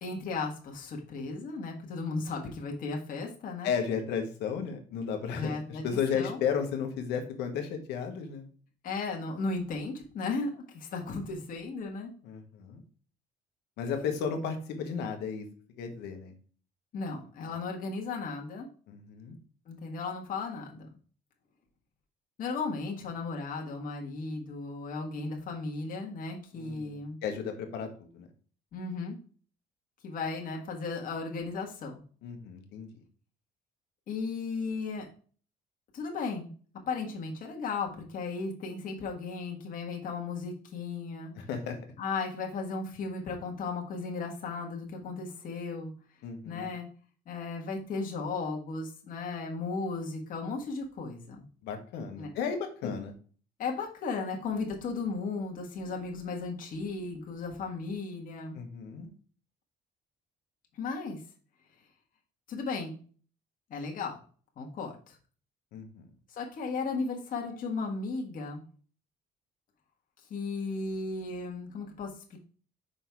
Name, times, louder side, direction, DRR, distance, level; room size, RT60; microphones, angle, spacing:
voice 1, 0.0-3.7 5.3-5.8 6.1-6.4 8.8-12.1 16.9-18.7 19.7-20.9 22.4-27.2 28.7-29.2 30.0-32.0 34.1-35.1 35.9-36.5 36.9-41.3 42.0-45.9 46.4-46.9 47.2-51.4 52.2-52.3 52.8-52.9 53.6-58.6 60.7-61.2 62.5-63.0 63.7-64.2 64.6-65.2 66.3-68.6 70.3-72.4, left 4 dB, 55° left, 0 dB, 1.6 m, -35 dB
voice 2, 3.6-8.4 12.2-12.8 13.8-15.5 15.8-16.3 17.5-17.6 18.9-19.4 26.5-28.3 32.2-32.9 41.3-41.8 46.2-46.7 51.6-53.1 58.5-59.1 65.7-66.1, left 6 dB, 85° left, 5 dB, 1.3 m, -34 dB
5.4 x 3.9 x 4.6 m, 0.42 s
cardioid pair, 110°, 17 cm